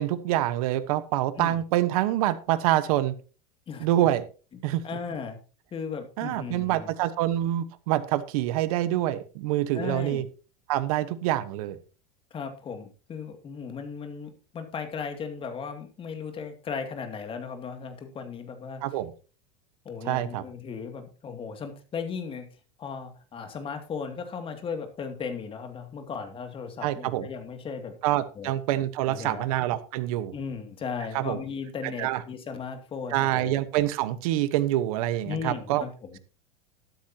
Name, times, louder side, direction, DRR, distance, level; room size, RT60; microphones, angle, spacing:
voice 1, 0.0-3.1 3.8-4.2 4.6-4.8 6.2-10.2 10.7-11.8 18.8-19.1 20.0-20.4 26.8-27.3 28.0-30.3 31.1-31.4 32.0-32.2 33.1-35.8, right 14 dB, 75° right, 13 dB, 1.3 m, -26 dB
voice 2, 4.8-5.4 5.7-6.9 9.7-10.2 12.3-18.8 19.8-22.5 22.8-27.9 28.4-28.5 29.1-29.5 30.3-33.6 35.2-36.2, left 6 dB, 30° left, 6 dB, 2.5 m, -36 dB
13.0 x 12.0 x 2.9 m, 0.35 s
supercardioid pair, 125°, 19 cm